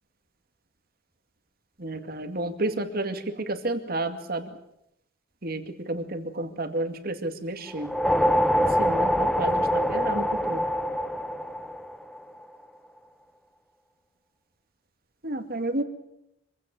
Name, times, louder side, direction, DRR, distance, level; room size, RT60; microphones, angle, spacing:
voice 1, 1.8-4.5 5.4-7.9 8.8-10.6 15.2-15.8, right 2 dB, 55° right, 8 dB, 2.3 m, -31 dB
sound 1, 7.7-12.3, equal, 5° left, 0.9 m, -24 dB
25.0 x 16.5 x 8.9 m, 0.81 s
head